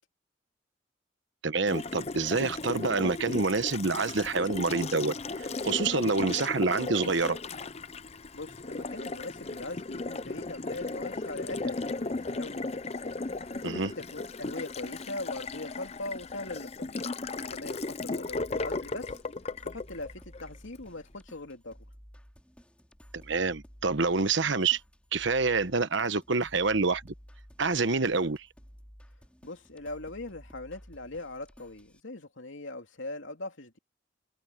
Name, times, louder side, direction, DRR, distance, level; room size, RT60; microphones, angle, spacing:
voice 1, 1.4-7.4 13.6-13.9 23.3-24.8 25.1-27.0 27.6-28.5, right 4 dB, 65° right, 1.1 m, -27 dB
Water tap faucet, 1.7-20.8, left 3 dB, 30° left, 0.6 m, -36 dB
voice 2, 8.3-12.7 13.5-17.0 17.4-19.2 19.6-21.8 29.4-33.8, left 2 dB, 75° left, 2.9 m, -41 dB
sound 1, 18.3-32.0, equal, 5° left, 3.7 m, -54 dB
head